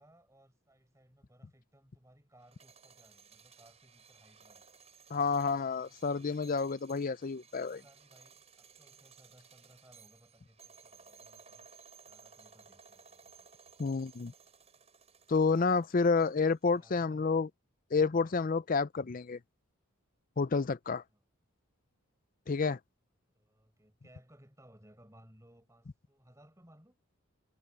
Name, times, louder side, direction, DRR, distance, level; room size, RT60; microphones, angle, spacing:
voice 1, 0.0-4.7 7.5-11.7 12.0-13.5 16.7-17.3 21.1-21.2 23.2-27.0, right 1 dB, 15° right, 6.2 m, -62 dB
sound 1, 2.4-16.5, right 5 dB, 30° right, 6.9 m, -59 dB
voice 2, 5.1-7.8 13.8-14.3 15.3-17.5 17.9-19.4 20.4-21.0 22.5-22.8, left 4 dB, 40° left, 0.5 m, -29 dB
head